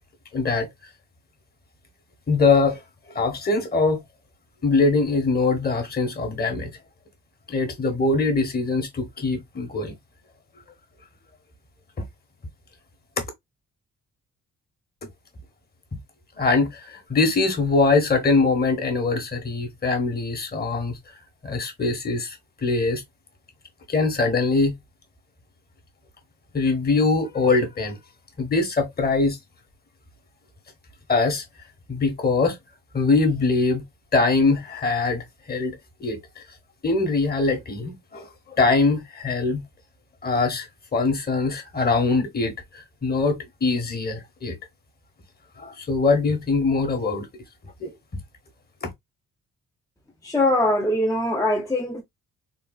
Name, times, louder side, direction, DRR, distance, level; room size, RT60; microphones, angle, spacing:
voice 1, 0.3-0.7 2.3-2.8 3.1-4.0 4.6-6.7 7.5-9.9 16.4-21.0 21.4-23.0 23.9-24.7 26.5-28.0 28.4-29.4 31.1-31.4 31.9-32.6 32.9-33.8 34.1-36.2 36.8-38.3 38.6-39.6 40.2-44.6 45.6-47.3 47.8-47.9 48.8-48.9, left 3 dB, 30° left, 1.2 m, -22 dB
voice 2, 50.2-52.0, left 1 dB, 10° left, 0.6 m, -22 dB
3.8 x 2.4 x 2.3 m
cardioid pair, 90°, 30 cm